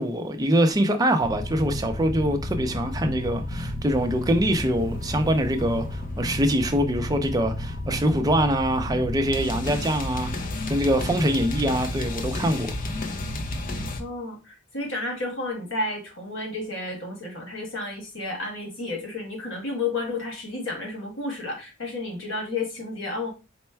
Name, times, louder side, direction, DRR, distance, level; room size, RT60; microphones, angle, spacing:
voice 1, 0.0-13.0, equal, 20° right, 0.5 m, -24 dB
sound 1, 1.2-14.0, left 1 dB, 45° left, 0.5 m, -32 dB
voice 2, 14.0-23.3, left 2 dB, 75° left, 1.7 m, -31 dB
4.3 x 2.2 x 4.4 m
head